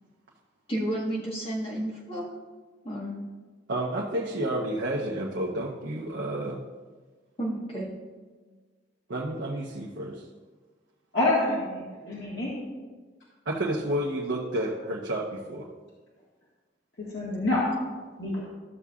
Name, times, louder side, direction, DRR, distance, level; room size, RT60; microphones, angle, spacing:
voice 1, 0.7-2.2 2.8-3.2 7.4-7.9, right 1 dB, 30° left, -5 dB, 1.9 m, -31 dB
voice 2, 3.7-6.6 9.1-10.2 13.5-15.7, right 1 dB, 80° right, -4 dB, 0.9 m, -30 dB
voice 3, 11.1-12.5 17.1-17.6 18.2-18.4, left 2 dB, 85° left, -7 dB, 1.7 m, -27 dB
13.5 x 6.8 x 2.5 m, 1.4 s
head